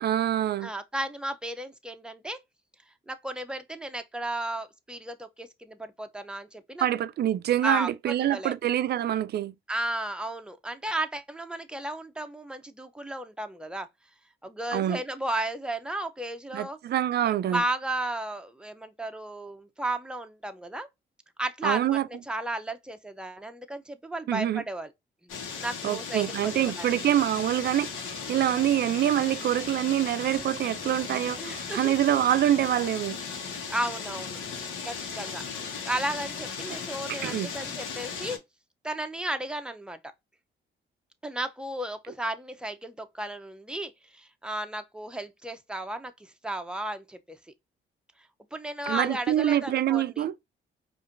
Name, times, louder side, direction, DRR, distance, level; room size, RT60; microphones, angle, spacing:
voice 1, 0.0-0.7 6.8-9.5 14.7-15.0 16.5-17.6 21.6-22.1 24.3-24.6 25.8-33.2 36.7-36.8 37.1-37.5 48.9-50.3, right 12 dB, 55° right, 0.4 m, -26 dB
voice 2, 0.6-2.4 3.1-6.9 7.6-8.5 9.7-13.9 14.4-16.8 17.5-20.9 21.4-24.9 25.2-26.9 31.4-31.9 33.7-34.4 34.8-38.4 38.8-40.0 41.2-47.4 48.5-50.3, right 1 dB, 5° right, 0.6 m, -34 dB
sound 1, 25.3-38.4, left 6 dB, 90° left, 1.1 m, -37 dB
4.9 x 2.6 x 2.5 m
cardioid pair, 90°, 20 cm